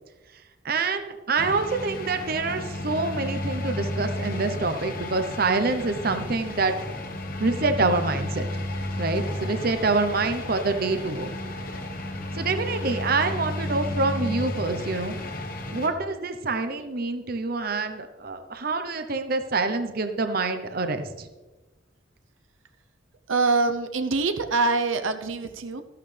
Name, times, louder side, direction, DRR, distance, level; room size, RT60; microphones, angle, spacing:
voice 1, 0.6-6.7 7.4-8.6 9.0-11.3 12.3-15.2 15.7-21.3, right 3 dB, 50° right, 8 dB, 0.8 m, -26 dB
sound 1, 1.4-15.9, left 1 dB, 45° left, 1.3 m, -32 dB
voice 2, 23.3-25.8, right 3 dB, 85° right, 8 dB, 0.8 m, -24 dB
14.0 x 11.5 x 3.4 m, 1.2 s
head